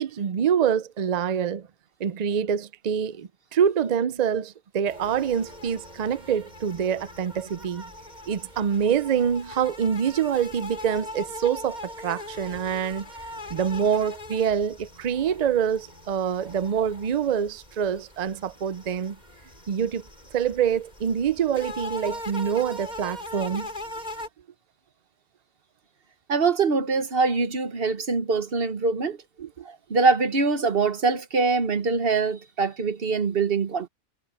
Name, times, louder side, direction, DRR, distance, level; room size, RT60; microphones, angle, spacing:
voice 1, 0.0-1.7 2.0-7.8 8.3-13.1 13.5-19.2 19.7-20.0 20.3-23.7 29.4-29.7, right 8 dB, 70° right, 0.4 m, -25 dB
sound 1, 4.9-24.3, left 1 dB, 30° left, 7.1 m, -41 dB
voice 2, 26.3-29.2 29.6-33.9, right 4 dB, 45° right, 1.4 m, -23 dB
omnidirectional pair, 1.4 m